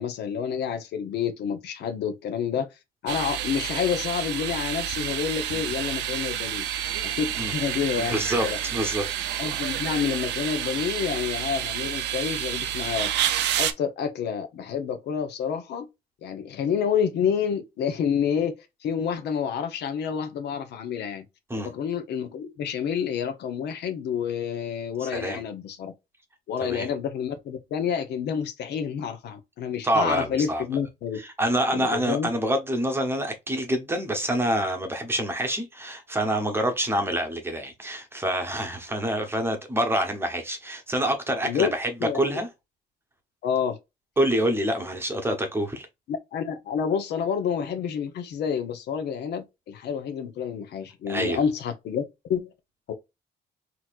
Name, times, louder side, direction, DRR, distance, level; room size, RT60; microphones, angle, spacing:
voice 1, 0.0-2.7 3.0-6.7 7.0-8.6 9.4-13.1 13.6-15.9 16.2-18.6 18.8-21.3 21.6-25.9 26.5-31.2 31.7-32.3 41.4-41.7 42.0-42.4 43.4-43.8 46.1-52.5 52.9-53.0, left 7 dB, 65° left, 1.0 m, -28 dB
sound 1, 3.1-13.7, right 11 dB, 75° right, 0.6 m, -29 dB
voice 2, 8.0-9.1 21.5-21.7 25.0-25.4 26.6-26.9 29.8-30.6 31.2-41.9 42.1-42.5 44.2-45.9 51.1-51.4, right 1 dB, 10° right, 1.0 m, -26 dB
4.1 x 2.9 x 2.5 m
cardioid pair, 125°, 19 cm